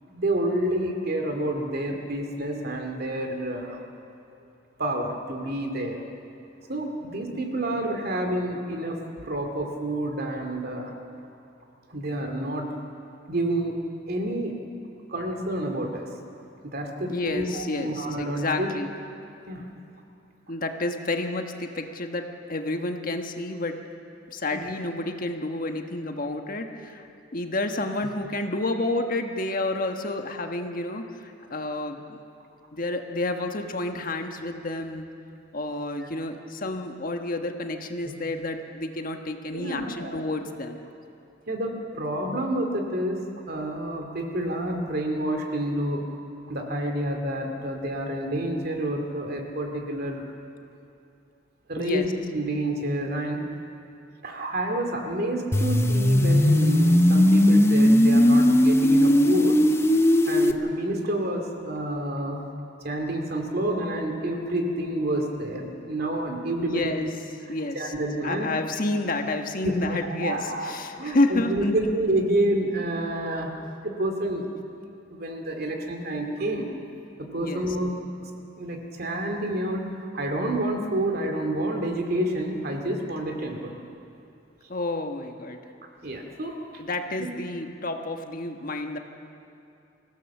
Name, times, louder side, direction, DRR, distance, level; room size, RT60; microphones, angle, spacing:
voice 1, 0.1-3.8 4.8-6.0 6.7-9.0 9.2-10.9 11.9-12.7 13.3-13.7 14.1-14.5 15.1-16.1 16.7-18.7 19.4-19.7 24.5-24.7 36.0-36.1 39.5-40.2 41.5-46.0 46.5-50.2 51.7-52.1 52.3-53.4 54.2-59.6 60.2-62.5 62.8-67.0 67.7-68.5 69.6-73.5 73.8-74.4 75.1-76.7 77.2-77.9 78.2-78.3 78.6-83.7 85.8-86.6 87.2-87.3, right 1 dB, 55° right, 3 dB, 2.5 m, -29 dB
voice 2, 17.1-18.9 20.5-22.2 22.5-23.7 24.3-27.1 27.3-32.2 32.7-35.1 35.5-40.8 51.8-52.1 66.6-67.1 67.5-67.9 68.2-71.7 77.4-77.7 84.7-85.6 86.8-89.0, left 2 dB, 50° left, 5 dB, 1.4 m, -30 dB
sound 1, 55.5-60.5, left 1 dB, 15° left, 0.7 m, -18 dB
25.5 x 16.5 x 7.2 m, 2.6 s
head